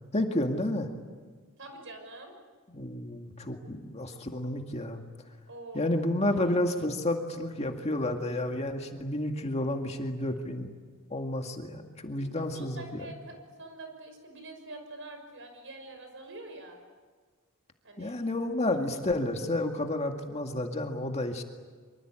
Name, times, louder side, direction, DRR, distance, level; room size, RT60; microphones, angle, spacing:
voice 1, 0.1-0.9 2.7-5.0 5.7-10.7 11.1-13.1 18.0-21.4, left 1 dB, 30° left, 4 dB, 2.1 m, -31 dB
voice 2, 1.6-2.3 5.5-6.1 12.1-16.8 17.8-18.2 18.9-19.3, right 2 dB, 60° right, 5 dB, 6.0 m, -45 dB
25.5 x 25.0 x 9.0 m, 1.5 s
head